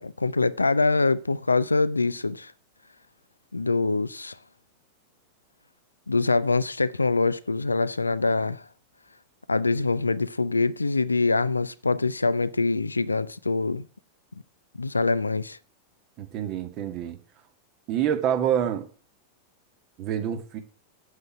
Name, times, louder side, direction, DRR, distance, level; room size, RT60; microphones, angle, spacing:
voice 1, 0.0-2.5 3.5-4.4 6.1-8.6 9.5-13.9 14.8-15.6, left 3 dB, 80° left, 0.5 m, -24 dB
voice 2, 16.2-17.2 17.9-18.9 20.0-20.6, right 9 dB, 40° right, 2.1 m, -27 dB
8.1 x 7.6 x 8.5 m
figure-of-eight pair, 90°, 0 cm